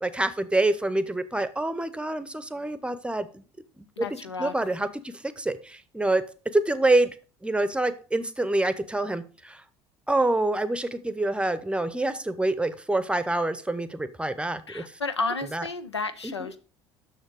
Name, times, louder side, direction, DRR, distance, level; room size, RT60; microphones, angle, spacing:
voice 1, 0.0-3.4 3.8-4.1 4.4-6.2 6.5-7.1 7.4-9.6 10.1-14.8 15.5-15.6 16.2-16.3, right 2 dB, 5° right, 14 dB, 0.7 m, -26 dB
voice 2, 4.0-4.5 14.7-16.6, left 3 dB, 85° left, 11 dB, 0.5 m, -32 dB
6.5 x 6.4 x 4.7 m, 0.37 s
figure-of-eight pair, 60°, 14 cm